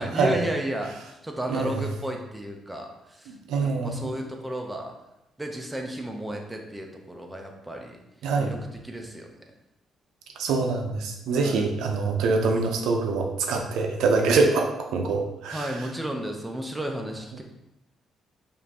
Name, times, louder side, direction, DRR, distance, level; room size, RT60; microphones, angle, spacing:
voice 1, 0.0-4.9 5.4-8.0 8.4-9.3 11.3-11.7 15.5-17.4, equal, 10° right, 2 dB, 0.7 m, -33 dB
voice 2, 3.3-4.1 8.2-8.5 10.4-15.6, right 4 dB, 85° right, 3 dB, 0.6 m, -24 dB
4.9 x 2.6 x 2.9 m, 0.90 s
cardioid pair, 90°, 0 cm